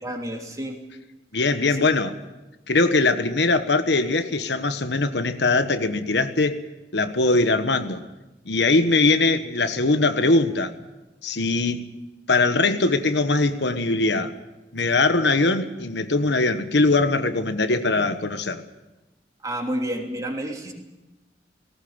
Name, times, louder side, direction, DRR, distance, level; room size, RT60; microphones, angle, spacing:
voice 1, 0.0-0.8 1.7-1.9 19.4-20.7, right 1 dB, 20° right, 3.1 m, -30 dB
voice 2, 1.3-2.1 2.7-6.6 6.9-8.0 8.4-10.7 11.2-11.9 12.3-14.3 14.7-18.6, left 3 dB, 80° left, 1.3 m, -21 dB
19.0 x 18.5 x 8.9 m
head